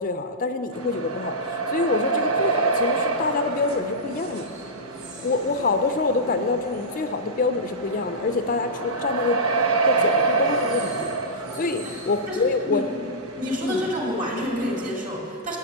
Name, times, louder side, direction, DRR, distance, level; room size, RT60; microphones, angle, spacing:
voice 1, 0.0-4.5 5.2-12.9 13.6-13.9, left 3 dB, 35° left, 8 dB, 0.4 m, -26 dB
sound 1, 0.7-14.9, right 3 dB, 75° right, 1.0 m, -28 dB
sound 2, 4.0-7.2 7.5-8.8 9.3-9.4 10.2-12.4 13.2-13.3 13.5-13.7 14.3-14.5, right 3 dB, 55° right, 3.1 m, -43 dB
sound 3, 4.7-11.3, right 1 dB, 5° right, 0.6 m, -43 dB
voice 2, 12.3-13.1 13.4-15.6, left 1 dB, 35° right, -2 dB, 2.2 m, -28 dB
12.5 x 7.0 x 8.4 m, 2.8 s
head